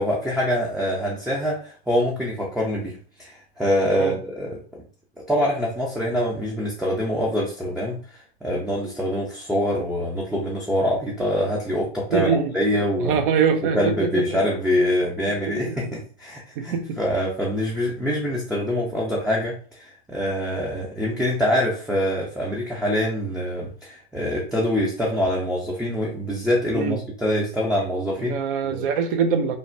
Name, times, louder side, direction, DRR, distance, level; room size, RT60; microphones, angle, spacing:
voice 1, 0.0-4.8 5.3-13.2 13.7-28.4 28.6-28.8, equal, ahead, -4 dB, 0.4 m, -25 dB
voice 2, 12.1-12.5 12.8-14.4 15.5-15.9 16.6-17.0 26.7-27.0 28.2-29.6, right 6 dB, 60° right, 7 dB, 0.5 m, -24 dB
3.2 x 2.0 x 2.6 m, 0.43 s
hypercardioid pair, 105°, 32 cm